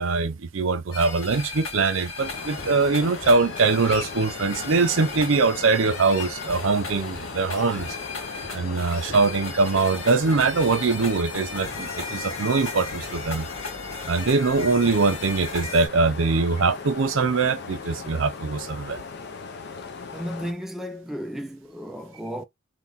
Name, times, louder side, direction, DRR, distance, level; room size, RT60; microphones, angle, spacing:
voice 1, 0.0-7.9 8.5-13.5 14.0-19.0, right 4 dB, 65° right, 0.6 m, -22 dB
sound 1, 0.9-15.9, left 3 dB, 70° left, 2.1 m, -36 dB
sound 2, 2.2-20.5, left 5 dB, 50° left, 0.6 m, -38 dB
voice 2, 20.1-22.4, equal, ahead, 0.3 m, -34 dB
3.6 x 2.3 x 4.1 m
head